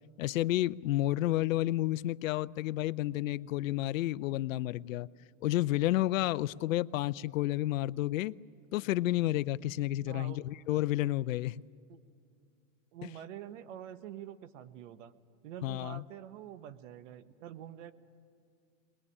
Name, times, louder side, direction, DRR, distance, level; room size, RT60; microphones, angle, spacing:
voice 1, 0.2-5.1 5.4-8.3 8.7-11.6 13.0-13.1 15.6-16.0, left 15 dB, 80° left, 0.6 m, -31 dB
voice 2, 10.1-10.4 11.9-12.0 12.9-15.1 15.4-17.9, right 11 dB, 70° right, 1.3 m, -46 dB
21.0 x 21.0 x 9.8 m
supercardioid pair, 120°, 39 cm